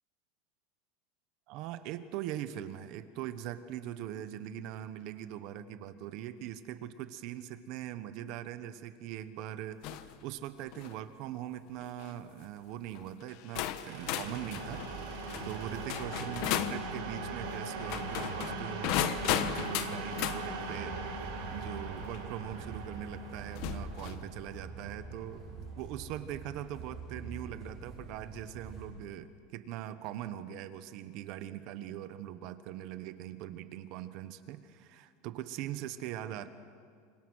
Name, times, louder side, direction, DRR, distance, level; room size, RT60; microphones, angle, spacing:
voice 1, 1.5-14.8 15.2-21.0 21.5-25.4 25.8-36.5, right 11 dB, 40° right, 12 dB, 1.1 m, -41 dB
sound 1, 9.8-10.1 10.6-11.0 11.8-12.1 12.9-13.0 13.6-16.8 17.8-20.4 22.1-22.2 23.5-24.2, left 12 dB, 45° left, 1.1 m, -35 dB
sound 2, 13.8-25.5, right 3 dB, 60° right, 7.0 m, -40 dB
sound 3, 20.7-28.9, right 4 dB, 10° right, 7.3 m, -45 dB
29.5 x 26.0 x 6.4 m, 2.2 s
supercardioid pair, 175°, 0 cm